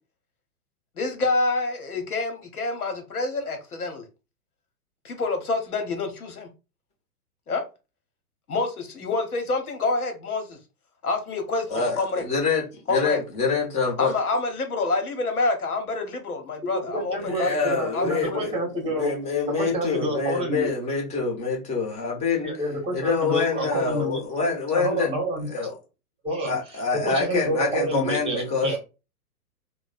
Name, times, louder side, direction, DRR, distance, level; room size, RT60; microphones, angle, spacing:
voice 1, 1.0-4.0 5.0-6.5 7.5-7.7 8.5-10.6 11.0-12.2 12.9-13.2 14.0-17.6 17.9-18.4, left 3 dB, 70° left, 1.2 m, -27 dB
voice 2, 11.7-14.1 17.3-18.6 18.8-22.5 22.9-25.1 25.5-25.7 26.4-28.8, left 4 dB, 15° left, 1.0 m, -26 dB
voice 3, 16.7-19.1 19.6-20.7 22.4-24.2 24.7-25.5 26.2-26.6 27.0-28.8, right 1 dB, 10° right, 1.2 m, -28 dB
3.1 x 2.3 x 4.1 m
figure-of-eight pair, 110°, 46 cm